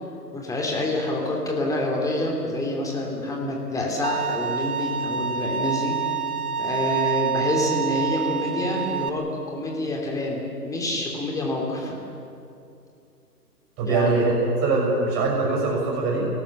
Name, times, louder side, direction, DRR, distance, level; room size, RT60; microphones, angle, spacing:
voice 1, 0.3-6.0 6.6-12.0 13.8-14.1, left 1 dB, 5° left, 0 dB, 3.1 m, -27 dB
Bowed string instrument, 4.0-9.1, right 7 dB, 60° right, 1.7 m, -27 dB
voice 2, 13.8-16.3, right 3 dB, 25° right, -1 dB, 6.1 m, -22 dB
28.5 x 18.0 x 7.0 m, 2.6 s
figure-of-eight pair, 135°, 49 cm